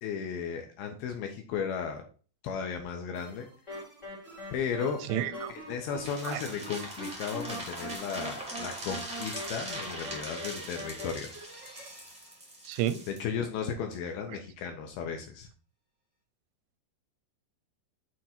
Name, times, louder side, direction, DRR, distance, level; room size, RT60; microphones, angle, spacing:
voice 1, 0.0-2.0 2.4-3.5 4.5-5.0 5.5-11.3 13.1-15.5, left 6 dB, 75° left, 2.4 m, -35 dB
sound 1, 3.1-13.5, right 2 dB, 15° right, 1.1 m, -52 dB
sound 2, 3.7-11.1, equal, 55° left, 0.8 m, -42 dB
voice 2, 5.1-5.5 6.2-6.4 12.6-13.0 14.3-14.4, right 11 dB, 90° right, 3.0 m, -31 dB
sound 3, 6.0-13.2, right 1 dB, 65° right, 0.4 m, -41 dB
7.8 x 3.6 x 4.3 m
omnidirectional pair, 5.1 m